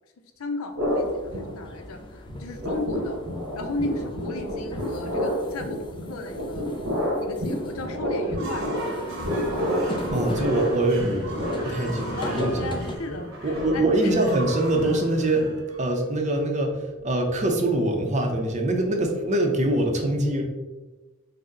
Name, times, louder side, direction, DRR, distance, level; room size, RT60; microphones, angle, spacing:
voice 1, 0.4-3.2 3.6-6.7 7.2-8.7 11.6-11.8 12.1-14.1, left 2 dB, 90° left, 6 dB, 0.6 m, -35 dB
sound 1, 0.8-2.0 2.3-15.4, equal, 85° right, 1.2 m, -30 dB
sound 2, 0.9-13.0, left 1 dB, 25° left, 0.4 m, -38 dB
sound 3, 8.2-16.3, right 1 dB, 70° right, 1.0 m, -39 dB
voice 2, 10.1-11.3 11.6-12.5 13.4-20.4, right 1 dB, 35° right, 3 dB, 0.6 m, -24 dB
5.2 x 2.1 x 3.7 m, 1.2 s
head